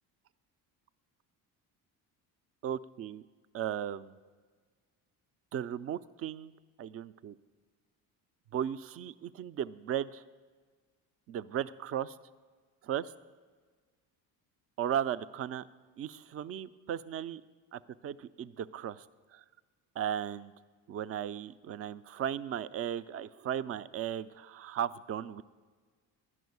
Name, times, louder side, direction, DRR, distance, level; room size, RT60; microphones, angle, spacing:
voice 1, 2.6-3.2 3.5-4.2 5.5-6.5 6.8-7.3 8.5-10.2 11.3-12.1 12.8-13.1 14.8-15.6 16.0-17.4 17.7-19.0 19.3-19.4 20.0-20.5 20.9-25.4, right 10 dB, 35° right, 15 dB, 0.4 m, -36 dB
12.0 x 6.2 x 9.3 m, 1.5 s
cardioid pair, 110°, 41 cm